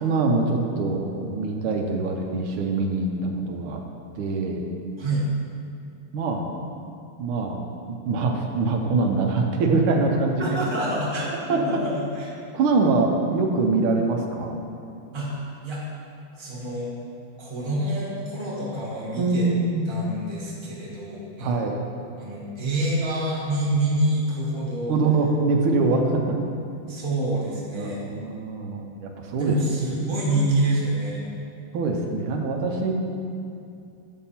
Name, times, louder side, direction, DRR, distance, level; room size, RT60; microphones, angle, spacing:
voice 1, 0.0-3.8 4.2-4.7 6.1-6.5 7.2-7.6 8.0-10.4 11.5-11.6 12.5-14.6 19.2-19.9 21.4-21.8 24.9-26.1 27.8-29.5 31.7-32.9, right 3 dB, 90° right, 2 dB, 1.6 m, -24 dB
voice 2, 10.4-12.3 15.1-15.8 16.4-16.9 17.4-19.5 19.9-21.6 22.2-25.0 26.9-28.0 29.4-31.2, right 1 dB, 15° right, -5 dB, 1.1 m, -27 dB
7.9 x 5.5 x 4.2 m, 2.6 s
omnidirectional pair, 2.3 m